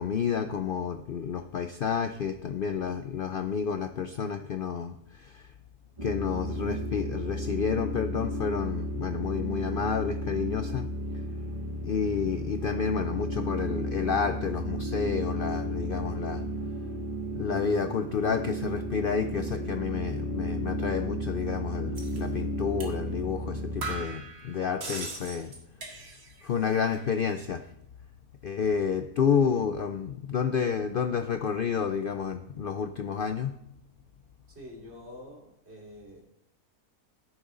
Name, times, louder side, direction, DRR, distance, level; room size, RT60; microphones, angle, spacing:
voice 1, 0.0-5.5 6.0-10.9 11.8-16.4 17.3-25.5 26.4-27.6 28.4-33.5, left 6 dB, 80° left, 8 dB, 0.4 m, -30 dB
sound 1, 6.0-24.0, equal, 25° right, 1.0 m, -33 dB
sound 2, 22.0-22.2 22.8-23.0 23.3-23.4 23.8-26.4 26.7-27.3, right 3 dB, 65° right, 2.2 m, -40 dB
voice 2, 34.5-36.2, left 1 dB, 45° right, -1 dB, 3.1 m, -46 dB
13.0 x 11.0 x 3.8 m, 0.77 s
omnidirectional pair, 1.6 m